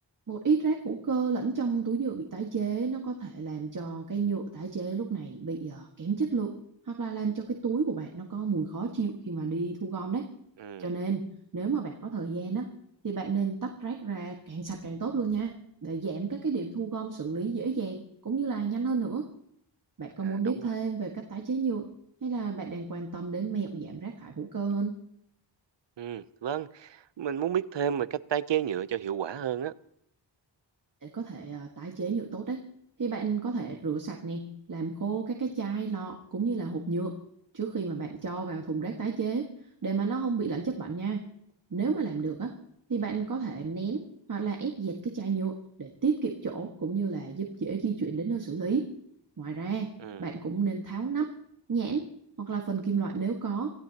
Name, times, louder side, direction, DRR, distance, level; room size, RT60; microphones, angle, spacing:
voice 1, 0.3-6.5 6.9-10.3 10.8-11.3 11.5-12.7 13.0-15.6 15.8-19.3 20.0-21.9 22.2-25.0 31.0-32.6 33.0-37.1 37.5-39.5 39.8-41.2 41.7-42.5 42.9-44.0 44.3-48.9 49.4-49.9 50.2-51.3 51.7-52.0 52.4-53.7, right 5 dB, 45° right, 1.8 m, -31 dB
voice 2, 10.6-10.9 20.2-20.7 26.0-29.7 50.0-50.3, right 9 dB, 70° right, 0.8 m, -32 dB
27.0 x 16.0 x 2.9 m
wide cardioid pair, 155°, 45 cm